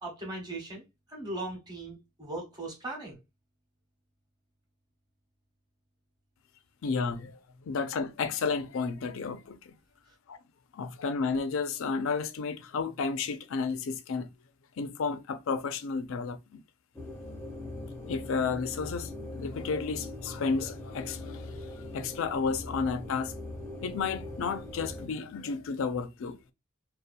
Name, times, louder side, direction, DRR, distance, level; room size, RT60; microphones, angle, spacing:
voice 1, 0.0-3.2, right 2 dB, 20° right, 1.0 m, -39 dB
voice 2, 6.8-7.4 7.7-9.7 10.3-10.4 10.7-14.3 14.8-16.6 18.0-23.3 23.8-26.4, left 5 dB, 65° left, 0.4 m, -32 dB
sound 1, 16.9-25.1, left 2 dB, 10° left, 0.5 m, -41 dB
2.6 x 2.1 x 2.5 m
head